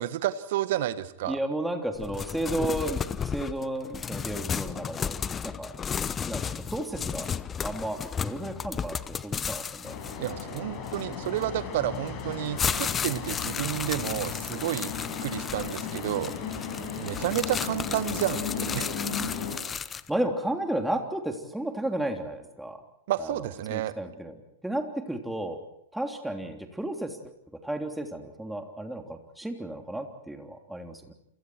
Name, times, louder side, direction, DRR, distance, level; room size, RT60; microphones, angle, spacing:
voice 1, 0.0-1.4 10.2-16.3 17.0-18.9 23.1-23.9, right 13 dB, 55° right, 13 dB, 1.6 m, -31 dB
voice 2, 1.3-5.2 5.4-5.7 6.2-7.3 7.6-9.9 20.1-22.8 23.2-23.3 23.7-24.4 24.6-25.6 25.9-27.2 27.6-31.1, right 1 dB, 5° right, 4 dB, 3.3 m, -33 dB
sound 1, 2.0-11.4 12.1-20.1, left 7 dB, 20° left, 0.9 m, -33 dB
sound 2, 9.8-19.6, left 6 dB, 35° left, 5.7 m, -35 dB
28.5 x 28.5 x 4.7 m, 0.76 s
figure-of-eight pair, 105°, 0 cm